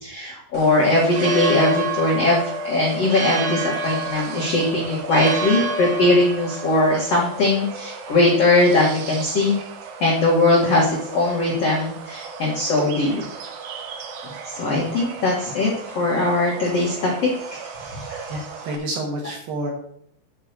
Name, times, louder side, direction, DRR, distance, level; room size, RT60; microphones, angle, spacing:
voice 1, 0.0-9.5 10.0-13.2 14.5-18.3, left 2 dB, 90° left, -3 dB, 1.3 m, -20 dB
sound 1, 0.5-18.8, right 3 dB, 85° right, 3.7 m, -32 dB
voice 2, 18.3-19.7, right 1 dB, 65° right, 0 dB, 2.6 m, -29 dB
8.9 x 4.6 x 6.6 m, 0.66 s
omnidirectional pair, 5.8 m